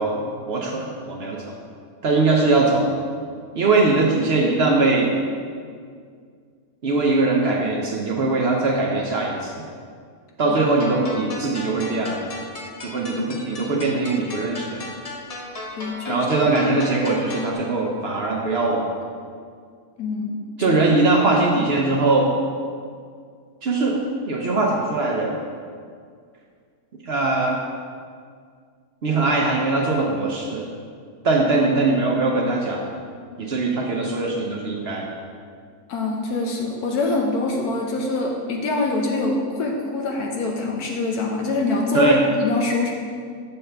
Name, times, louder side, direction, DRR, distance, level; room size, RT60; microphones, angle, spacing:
voice 1, 0.0-1.6 2.0-2.9 3.5-5.1 6.8-9.5 10.4-12.2 12.8-14.8 16.1-18.9 20.6-22.3 23.6-24.0 24.3-25.4 27.0-27.6 29.0-30.6 31.2-32.9 33.4-35.1 41.9-42.2, right 3 dB, 55° right, -1 dB, 0.7 m, -21 dB
sound 1, 10.5-17.5, left 2 dB, 40° left, 0.5 m, -36 dB
voice 2, 15.7-16.3 20.0-20.8 35.9-42.9, left 3 dB, 75° left, 0 dB, 1.2 m, -24 dB
7.1 x 6.6 x 3.4 m, 2.1 s
omnidirectional pair, 1.7 m